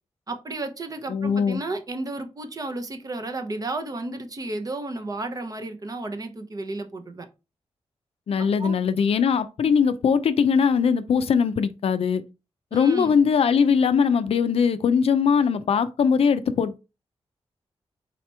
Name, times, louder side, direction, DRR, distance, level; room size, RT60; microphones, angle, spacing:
voice 1, 0.3-7.3 8.4-8.8 12.7-13.2, right 2 dB, 35° right, 0.7 m, -32 dB
voice 2, 1.1-1.6 8.3-12.2 12.7-16.8, left 6 dB, 70° left, 0.4 m, -21 dB
4.1 x 2.9 x 3.3 m
wide cardioid pair, 130°, 11 cm